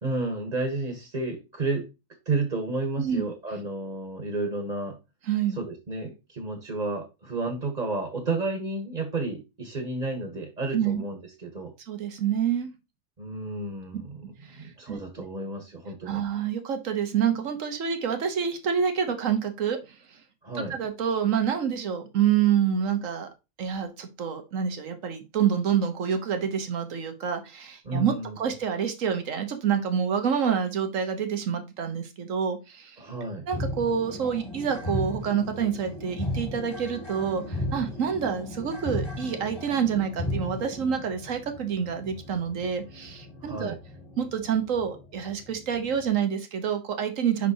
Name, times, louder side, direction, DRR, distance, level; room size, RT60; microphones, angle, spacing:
voice 1, 0.0-1.9 2.2-5.0 5.6-11.7 13.2-14.2 14.5-16.2 20.4-20.8 27.8-28.4 33.0-33.5 43.4-43.8, right 3 dB, 35° right, 4 dB, 1.4 m, -31 dB
voice 2, 5.3-5.6 10.7-11.0 11.9-12.7 14.5-15.0 16.1-19.8 20.7-23.3 23.6-33.0 33.5-43.7 44.2-47.5, right 8 dB, 90° right, 7 dB, 1.5 m, -27 dB
sound 1, 33.5-46.2, left 1 dB, 30° left, 2.0 m, -36 dB
5.9 x 5.7 x 2.8 m, 0.26 s
omnidirectional pair, 1.3 m